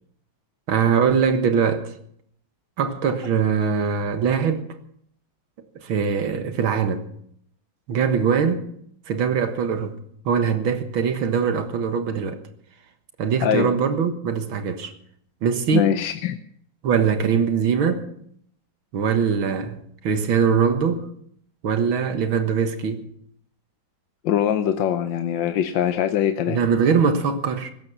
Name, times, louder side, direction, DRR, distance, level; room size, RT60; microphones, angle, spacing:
voice 1, 0.7-1.9 2.8-4.6 5.8-7.1 7.9-8.7 9.1-10.0 10.3-12.4 13.2-14.9 15.4-15.9 16.8-18.1 18.9-21.1 21.6-23.1 26.5-27.7, right 6 dB, 90° right, 2.2 m, -22 dB
voice 2, 15.7-16.4 24.2-26.6, left 10 dB, 75° left, 1.4 m, -22 dB
16.0 x 13.0 x 6.0 m
omnidirectional pair, 2.2 m